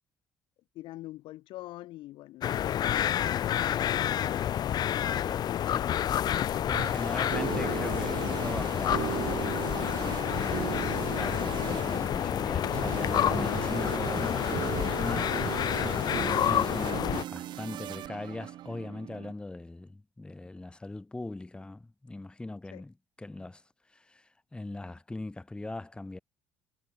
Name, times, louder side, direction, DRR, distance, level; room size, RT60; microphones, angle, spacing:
voice 1, 0.7-4.3 6.8-8.3 22.7-22.8, left 16 dB, 75° left, 1.5 m, -45 dB
sound 1, 2.4-17.2, left 10 dB, 55° left, 0.5 m, -29 dB
voice 2, 5.2-5.9 6.7-9.2 10.3-23.6 23.9-26.2, left 2 dB, 10° left, 0.6 m, -40 dB
sound 2, 6.5-19.3, right 13 dB, 65° right, 0.8 m, -37 dB
sound 3, 9.9-10.4 10.8-12.2 12.7-13.1 13.6-14.1 14.5-15.9 16.4-16.8, right 5 dB, 40° right, 7.4 m, -54 dB
supercardioid pair, 70°, 8 cm